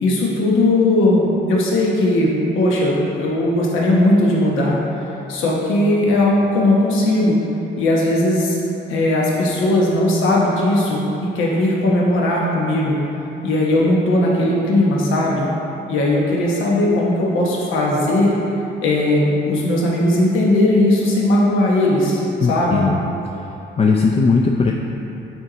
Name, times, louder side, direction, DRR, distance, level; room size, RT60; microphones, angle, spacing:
voice 1, 0.0-2.3 2.5-7.4 7.8-8.6 8.9-13.0 13.4-15.5 15.9-18.3 18.8-22.8, left 1 dB, 80° left, -3 dB, 1.0 m, -18 dB
voice 2, 22.4-23.0 23.8-24.7, left 4 dB, 30° left, 0 dB, 0.4 m, -17 dB
7.2 x 4.6 x 3.9 m, 2.9 s
cardioid pair, 90°, 20 cm